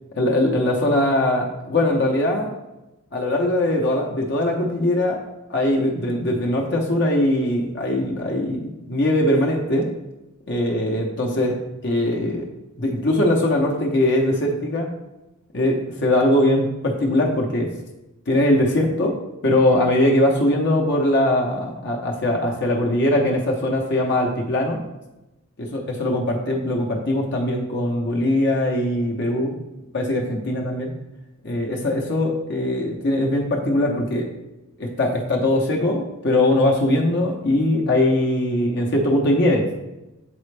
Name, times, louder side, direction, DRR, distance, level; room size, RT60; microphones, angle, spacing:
voice 1, 0.2-2.5 3.1-5.2 5.5-9.9 10.5-11.6 11.8-12.5 12.8-14.9 15.5-17.7 18.3-19.1 19.4-24.8 25.7-29.6 29.9-30.9 31.4-34.3 34.8-39.7, left 1 dB, 50° left, -1 dB, 0.7 m, -21 dB
7.7 x 4.2 x 3.3 m, 0.98 s
head